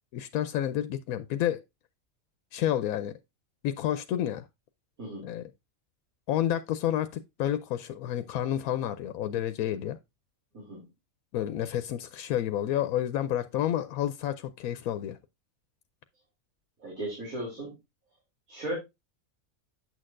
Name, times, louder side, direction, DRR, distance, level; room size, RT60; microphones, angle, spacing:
voice 1, 0.1-1.6 2.5-3.1 3.6-4.5 5.2-5.4 6.3-10.0 11.3-15.2, left 11 dB, 85° left, 1.0 m, -30 dB
voice 2, 16.8-17.8 18.5-18.7, right 1 dB, 80° right, 3.6 m, -36 dB
8.9 x 6.4 x 2.5 m
omnidirectional pair, 1.5 m